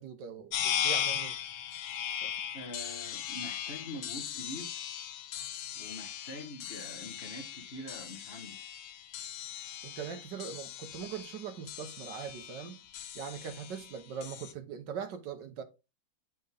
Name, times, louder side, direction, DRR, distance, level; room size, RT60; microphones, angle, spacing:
voice 1, 0.0-1.3 2.2-2.3 9.8-12.9 13.1-15.6, right 7 dB, 65° right, 1.4 m, -41 dB
sound 1, 0.5-14.5, left 9 dB, 85° left, 0.6 m, -38 dB
voice 2, 2.5-4.8 5.7-8.6, left 1 dB, 35° left, 1.4 m, -44 dB
10.5 x 4.3 x 3.4 m
omnidirectional pair, 2.1 m